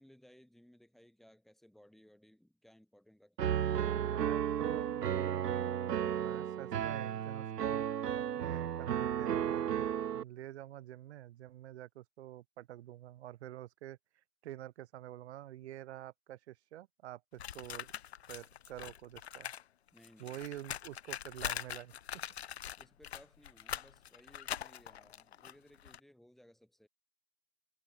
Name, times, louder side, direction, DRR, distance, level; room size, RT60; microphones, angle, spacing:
voice 1, 0.0-4.2 19.9-20.4 22.8-26.9, equal, ahead, 6.5 m, -62 dB
Piano, 3.4-10.2, right 9 dB, 80° right, 1.0 m, -33 dB
voice 2, 3.9-14.0 14.4-17.9 18.3-19.5 20.2-21.9, right 13 dB, 45° right, 4.1 m, -48 dB
sound 1, 17.4-19.6 19.9-26.0, left 10 dB, 45° left, 0.4 m, -43 dB
hypercardioid pair, 150°, 47 cm